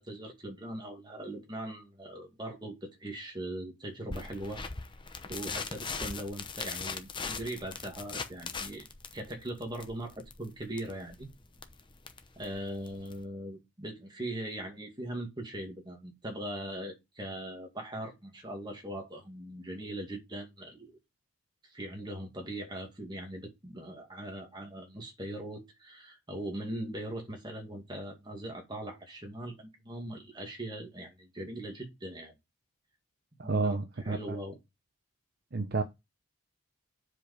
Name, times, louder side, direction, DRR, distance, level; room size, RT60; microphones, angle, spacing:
voice 1, 0.0-4.6 5.2-8.9 9.1-11.3 12.4-21.0 21.6-32.3 33.4-33.8 34.0-34.6, right 1 dB, 20° right, 2.2 m, -40 dB
sound 1, 4.1-13.2, left 5 dB, 20° left, 0.8 m, -40 dB
voice 2, 33.4-34.4 35.5-35.8, right 3 dB, 45° right, 0.7 m, -30 dB
7.5 x 5.0 x 5.3 m
head